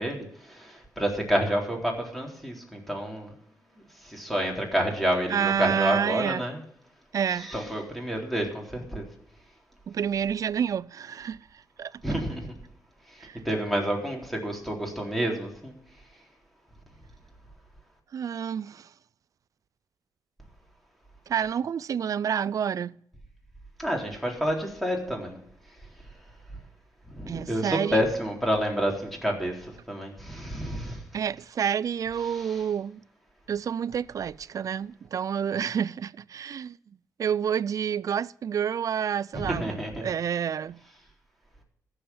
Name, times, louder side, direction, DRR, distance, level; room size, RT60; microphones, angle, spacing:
voice 1, 0.0-3.3 4.0-6.6 7.3-9.1 12.0-12.6 13.1-15.7 23.8-25.4 27.1-31.0 32.3-32.6 39.3-40.1, equal, ahead, 3.8 m, -29 dB
voice 2, 5.3-6.4 7.1-7.5 9.9-11.4 11.8-12.0 13.2-13.4 18.1-18.9 21.3-23.0 27.3-28.1 31.1-33.0 33.5-36.8 37.2-40.8, right 8 dB, 55° right, 0.4 m, -29 dB
14.5 x 7.1 x 7.1 m
cardioid pair, 80°, 7 cm